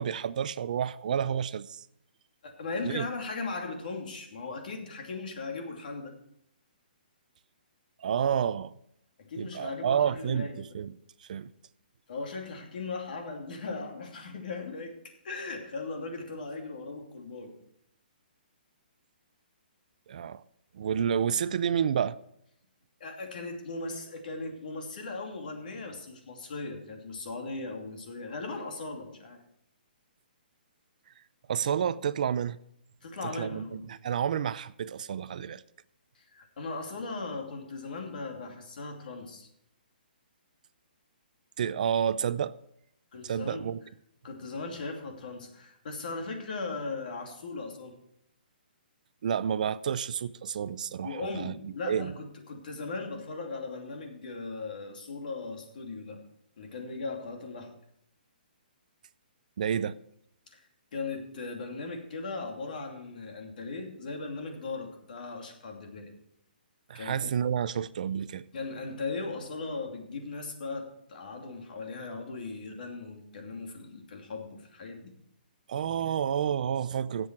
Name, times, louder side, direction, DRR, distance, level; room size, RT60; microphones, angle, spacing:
voice 1, 0.0-1.8 2.8-3.1 8.0-8.7 9.4-11.0 11.3-11.5 20.1-20.4 20.7-22.2 31.5-32.6 33.4-35.6 41.6-42.5 43.2-43.8 49.2-52.1 59.6-59.9 66.9-68.4 75.7-77.3, right 8 dB, 50° right, 0.5 m, -30 dB
voice 2, 2.4-6.2 9.2-10.8 12.1-17.5 23.0-29.4 33.0-33.9 36.1-39.5 43.1-43.7 44.2-48.0 51.0-56.2 56.6-57.7 60.5-66.1 66.9-67.3 68.5-75.1, left 3 dB, 60° left, 2.8 m, -38 dB
17.0 x 7.7 x 4.5 m
hypercardioid pair, 165°, 5 cm